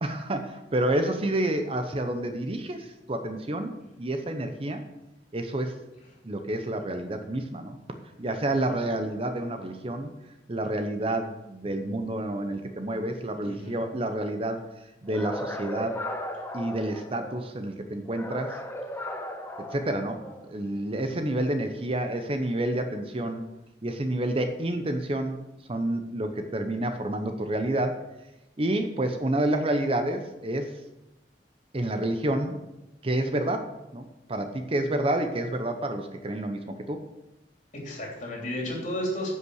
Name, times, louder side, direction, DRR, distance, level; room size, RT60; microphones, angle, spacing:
voice 1, 0.0-3.7 4.0-4.8 5.3-5.8 6.2-7.8 8.2-10.1 10.5-14.6 15.0-16.0 16.5-18.6 19.7-23.4 23.8-25.4 25.7-28.0 28.6-30.8 31.7-32.6 33.0-37.0, right 1 dB, 35° right, 7 dB, 0.8 m, -29 dB
voice 2, 13.4-13.8 37.7-39.3, left 1 dB, 45° left, -2 dB, 3.2 m, -33 dB
sound 1, 15.1-17.5 18.1-20.5, left 1 dB, 15° left, 0.7 m, -36 dB
10.0 x 5.5 x 6.4 m, 0.94 s
head